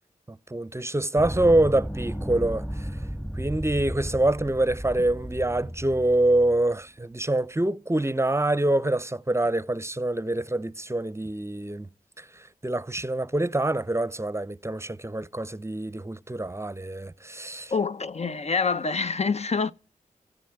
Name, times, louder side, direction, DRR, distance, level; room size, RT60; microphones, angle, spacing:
voice 1, 0.5-2.6 3.4-11.9 12.6-17.7, right 1 dB, 20° right, 0.6 m, -25 dB
sound 1, 1.2-6.7, equal, 10° left, 1.5 m, -34 dB
voice 2, 17.7-19.7, left 4 dB, 50° left, 0.6 m, -26 dB
15.0 x 9.2 x 7.8 m
cardioid pair, 45°, 14 cm